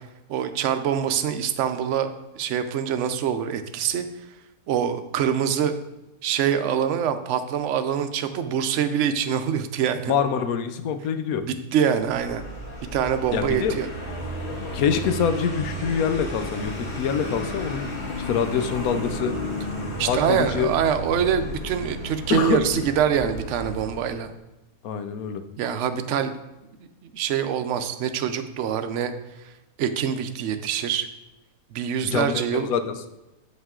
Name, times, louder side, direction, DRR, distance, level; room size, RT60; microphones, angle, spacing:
voice 1, 0.3-4.0 4.7-5.8 6.2-10.1 11.4-12.5 12.9-13.9 20.0-24.3 25.6-26.3 27.0-29.1 29.8-31.1 31.7-32.7, right 8 dB, 65° right, 9 dB, 0.8 m, -25 dB
voice 2, 10.1-11.4 13.3-13.8 14.7-17.9 18.2-19.4 20.0-20.7 22.3-22.9 24.8-25.4 32.0-32.9, left 7 dB, 75° left, 8 dB, 1.1 m, -25 dB
Vehicle, 12.0-24.2, left 1 dB, 25° left, 1.8 m, -33 dB
8.0 x 5.6 x 3.7 m, 0.97 s
omnidirectional pair, 1.6 m